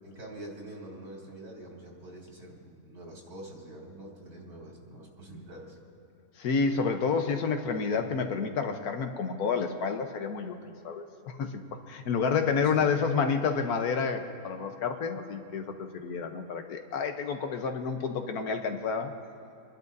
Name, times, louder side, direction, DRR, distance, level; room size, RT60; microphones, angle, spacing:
voice 1, 0.0-5.8 12.7-13.0, right 1 dB, 90° right, -3 dB, 3.1 m, -45 dB
voice 2, 6.4-10.6 10.8-11.5 11.9-19.1, left 5 dB, 85° left, 6 dB, 1.4 m, -29 dB
28.5 x 11.5 x 2.7 m, 2.8 s
omnidirectional pair, 1.6 m